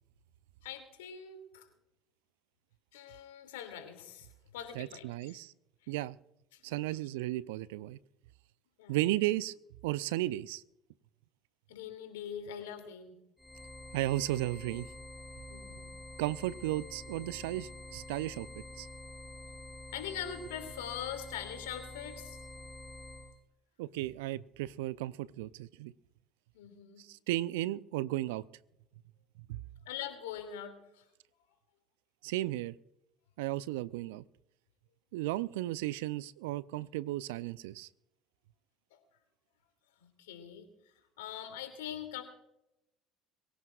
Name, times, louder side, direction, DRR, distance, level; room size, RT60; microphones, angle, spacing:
voice 1, 0.6-1.7 2.9-4.3 4.5-5.4 6.5-6.6 8.8-9.0 11.7-13.2 15.5-15.9 19.9-22.4 26.5-27.0 29.9-31.0 40.0-40.7 41.2-42.2, left 9 dB, 75° left, 7 dB, 2.7 m, -42 dB
voice 2, 4.7-5.5 5.9-6.2 6.6-8.0 8.9-9.5 9.8-10.6 13.9-14.9 16.2-18.9 23.8-25.9 27.0-28.4 29.5-29.6 32.2-32.7 33.4-34.2 35.1-37.9, right 16 dB, 75° right, 19 dB, 0.4 m, -34 dB
sound 1, 13.4-23.3, left 2 dB, 5° left, 5.1 m, -47 dB
23.5 x 16.5 x 2.4 m, 0.84 s
hypercardioid pair, 60°, 0 cm